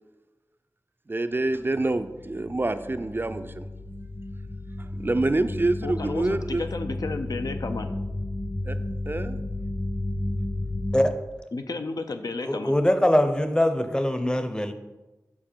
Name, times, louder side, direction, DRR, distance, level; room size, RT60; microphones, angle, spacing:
voice 1, 1.1-3.7 4.8-6.6 8.6-8.8 9.1-9.4, right 2 dB, 35° right, 10 dB, 0.3 m, -27 dB
sound 1, 1.5-10.9, left 2 dB, 35° left, 1.0 m, -33 dB
voice 2, 5.8-7.9 11.5-12.7, left 3 dB, 85° left, 7 dB, 0.5 m, -32 dB
voice 3, 12.4-14.7, left 1 dB, 15° left, 8 dB, 0.6 m, -22 dB
7.2 x 4.7 x 4.4 m, 1.1 s
wide cardioid pair, 65°, 6 cm